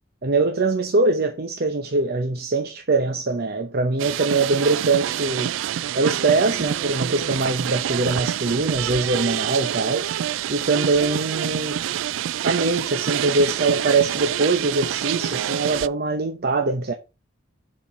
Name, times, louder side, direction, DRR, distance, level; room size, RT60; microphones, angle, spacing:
voice 1, 0.2-5.5 5.9-10.1 10.5-11.8 12.4-16.9, right 3 dB, 55° right, 0.8 m, -22 dB
sound 1, 4.0-15.9, right 10 dB, 75° right, 0.3 m, -27 dB
7.3 x 4.3 x 5.3 m
head